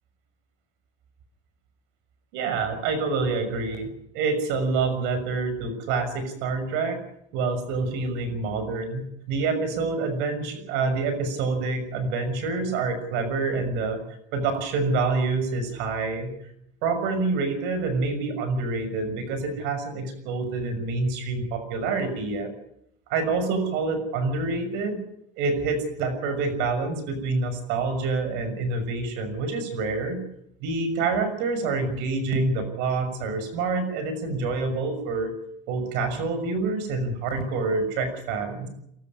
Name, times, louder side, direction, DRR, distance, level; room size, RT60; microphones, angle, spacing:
voice 1, 2.3-3.9 4.1-7.0 7.3-14.0 14.3-16.3 16.8-22.5 23.1-25.0 25.4-30.2 30.6-35.3 35.7-38.7, right 3 dB, 75° right, 9 dB, 6.5 m, -27 dB
23.5 x 14.0 x 9.8 m, 0.77 s
supercardioid pair, 115°, 18 cm